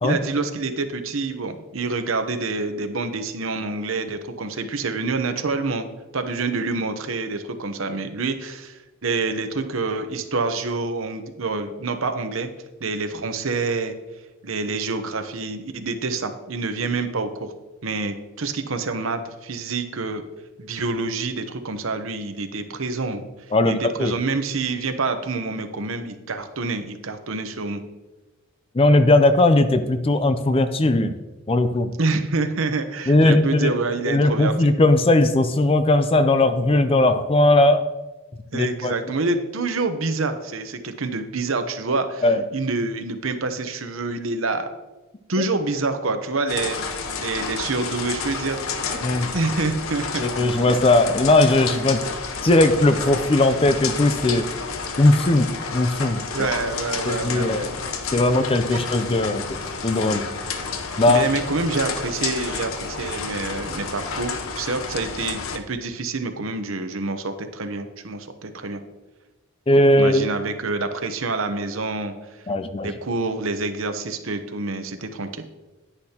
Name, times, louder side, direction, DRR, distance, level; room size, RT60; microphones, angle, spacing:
voice 1, 0.0-5.9 6.1-12.5 12.8-13.9 14.4-17.5 17.8-20.2 20.6-23.2 23.6-27.8 32.0-34.7 38.5-42.3 42.5-44.7 45.3-48.6 49.3-50.2 56.3-57.7 58.7-58.8 61.1-68.8 70.0-72.1 72.8-75.4, right 3 dB, 70° right, 8 dB, 0.9 m, -27 dB
voice 2, 23.5-24.1 28.7-31.1 31.5-31.9 33.1-33.7 34.1-37.8 38.5-38.9 42.2-42.4 49.0-49.3 50.2-52.0 52.4-54.5 55.0-56.2 57.1-57.7 58.1-60.3 61.0-61.3 69.7-70.3 72.5-72.9, left 2 dB, 25° left, 10 dB, 0.5 m, -18 dB
sound 1, 46.5-65.6, left 5 dB, 75° left, 0.8 m, -30 dB
10.0 x 9.8 x 2.9 m, 1.1 s
head